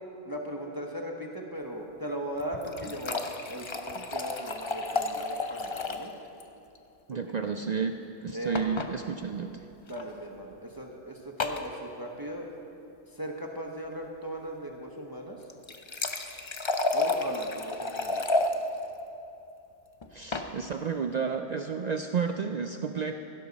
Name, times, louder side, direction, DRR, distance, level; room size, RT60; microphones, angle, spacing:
voice 1, 0.3-6.1 7.1-7.5 8.3-8.7 9.9-12.5 13.1-15.5 16.9-18.2, right 1 dB, 20° right, 1 dB, 0.9 m, -38 dB
sound 1, 2.4-6.1 6.4-6.5 6.7-6.8 8.5-8.9 9.9-10.0 11.4-11.7 15.4-18.5 20.0-20.5, left 2 dB, 35° left, 0.5 m, -31 dB
voice 2, 7.1-9.6 20.1-23.1, right 6 dB, 75° right, 6 dB, 0.4 m, -31 dB
16.0 x 12.0 x 4.1 m, 2.9 s
omnidirectional pair, 1.3 m